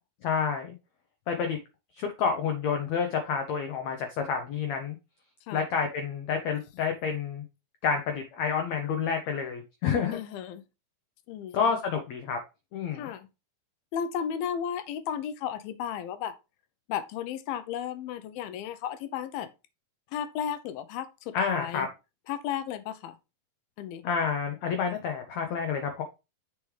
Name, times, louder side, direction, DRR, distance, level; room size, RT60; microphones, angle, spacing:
voice 1, 0.2-0.7 1.3-1.6 2.0-5.0 5.5-7.4 7.8-10.2 11.5-12.4 12.7-13.1 21.3-21.9 24.0-26.0, left 6 dB, 70° left, 1.7 m, -29 dB
voice 2, 10.1-10.6 11.3-11.8 13.0-13.3 13.9-16.3 16.9-19.5 20.1-21.9 22.3-23.2 23.8-24.1, left 9 dB, 90° left, 2.6 m, -34 dB
8.2 x 5.0 x 3.2 m
omnidirectional pair, 4.2 m